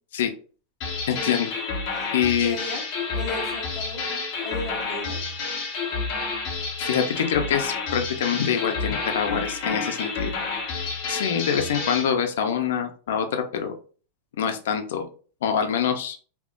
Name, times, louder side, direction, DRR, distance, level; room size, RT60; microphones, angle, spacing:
sound 1, 0.8-12.1, left 4 dB, 40° left, 1.0 m, -30 dB
voice 1, 1.1-1.5 2.1-2.6 6.8-10.3 11.1-13.7 14.4-15.1 15.4-16.2, left 8 dB, 90° left, 6 dB, 0.6 m, -25 dB
voice 2, 1.9-2.8 3.1-4.1 4.4-5.2, left 2 dB, 5° left, -6 dB, 1.2 m, -35 dB
3.5 x 2.9 x 2.5 m, 0.39 s
supercardioid pair, 175°, 0 cm